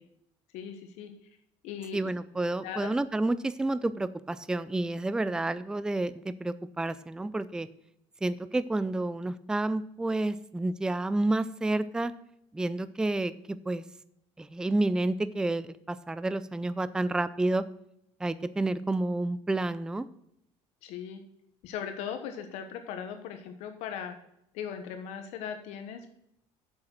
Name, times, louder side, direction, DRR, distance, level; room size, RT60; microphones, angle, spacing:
voice 1, 0.5-1.1 1.6-2.1 2.6-2.9 20.8-21.2 21.6-24.1 24.5-26.1, left 8 dB, 80° left, 7 dB, 1.3 m, -38 dB
voice 2, 1.9-7.7 8.2-12.1 12.5-13.8 14.4-17.6 18.2-20.1, right 2 dB, 5° right, 15 dB, 0.4 m, -30 dB
7.5 x 7.3 x 6.3 m, 0.76 s
cardioid pair, 135°, 11 cm